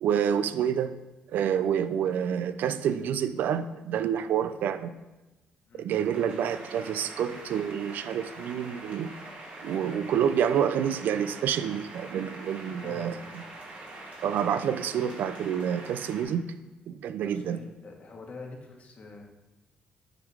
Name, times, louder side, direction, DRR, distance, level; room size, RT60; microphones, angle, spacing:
voice 1, 0.0-0.9 1.3-5.0 5.7-9.1 9.6-13.2 14.2-16.5 16.9-17.6, right 8 dB, 70° right, 12 dB, 0.4 m, -28 dB
sound 1, 5.9-16.2, right 2 dB, 55° right, 2.0 m, -44 dB
voice 2, 12.8-13.2 17.3-19.2, left 3 dB, 45° left, 1 dB, 1.4 m, -45 dB
7.9 x 3.7 x 4.8 m, 1.1 s
cardioid pair, 105°, 3 cm